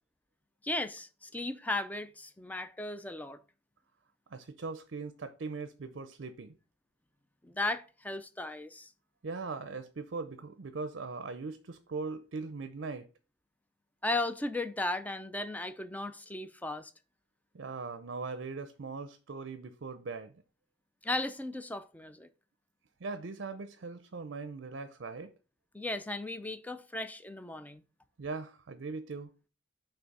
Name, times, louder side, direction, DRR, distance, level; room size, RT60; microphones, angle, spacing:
voice 1, 0.6-3.4 7.4-8.9 14.0-16.9 21.0-22.3 25.7-27.8, left 2 dB, 10° left, 0.4 m, -36 dB
voice 2, 4.3-6.5 9.2-13.1 17.5-20.4 23.0-25.3 28.2-29.3, right 4 dB, 65° right, 0.5 m, -40 dB
6.0 x 3.4 x 5.3 m
head